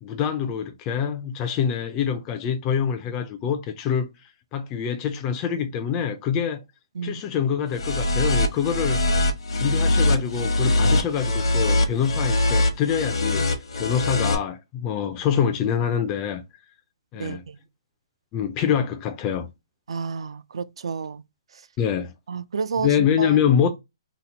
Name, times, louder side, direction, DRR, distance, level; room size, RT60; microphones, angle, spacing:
voice 1, 0.0-4.1 4.5-6.6 7.0-9.0 9.5-16.4 17.1-17.4 18.3-19.5 21.8-22.1 22.7-23.7, left 8 dB, 20° left, 0.3 m, -25 dB
sound 1, 7.7-14.3, left 2 dB, 75° left, 0.8 m, -22 dB
voice 2, 19.9-21.2 22.3-23.3, right 5 dB, 75° right, 0.4 m, -30 dB
2.9 x 2.0 x 3.8 m
hypercardioid pair, 165°, 3 cm